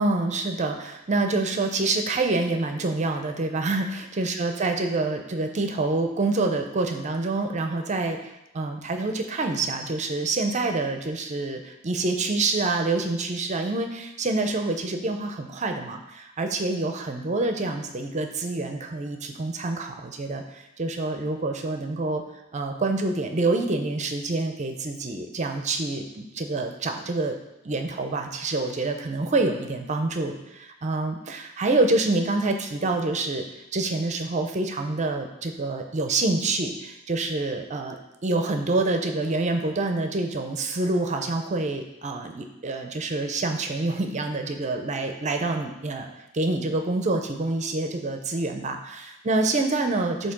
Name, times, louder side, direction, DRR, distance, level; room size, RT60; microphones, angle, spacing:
voice 1, 0.0-22.2 22.5-27.4 27.6-33.4 33.7-46.1 46.3-50.3, right 2 dB, 35° right, 5 dB, 0.6 m, -27 dB
8.1 x 2.8 x 5.9 m, 0.92 s
head